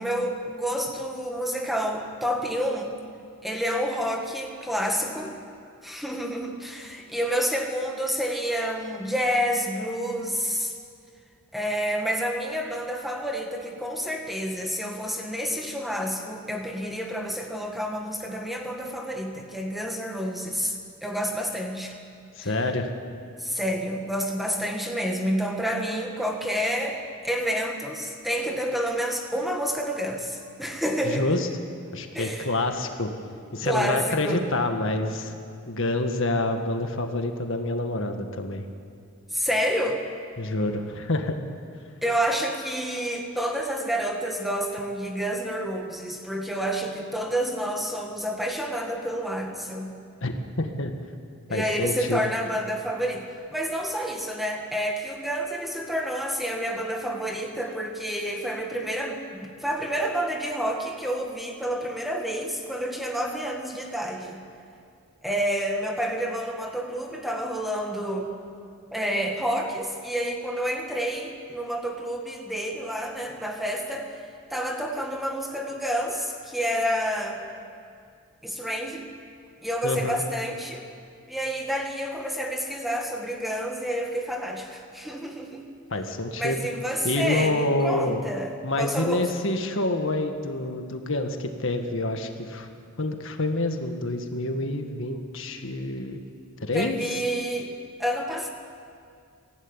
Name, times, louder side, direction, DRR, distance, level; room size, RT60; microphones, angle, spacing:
voice 1, 0.0-3.0 3.4-5.4 5.8-10.7 11.5-22.0 22.4-22.5 23.4-27.0 27.2-31.4 32.1-32.5 33.6-34.4 39.3-40.0 42.0-50.0 51.5-53.3 53.5-64.4 65.2-68.3 68.9-74.2 74.5-77.4 78.4-79.0 79.6-80.9 81.3-85.6 86.4-89.3 96.7-97.7 98.0-98.5, equal, ahead, 2 dB, 1.8 m, -29 dB
voice 2, 22.4-22.9 31.0-31.5 31.9-33.1 33.5-35.3 35.7-38.6 40.4-41.4 50.2-50.9 51.5-52.3 79.8-80.2 85.9-86.6 87.0-88.2 88.6-92.7 93.0-96.2 96.7-97.0, left 2 dB, 60° left, 5 dB, 1.7 m, -27 dB
23.0 x 15.5 x 9.9 m, 2.4 s
head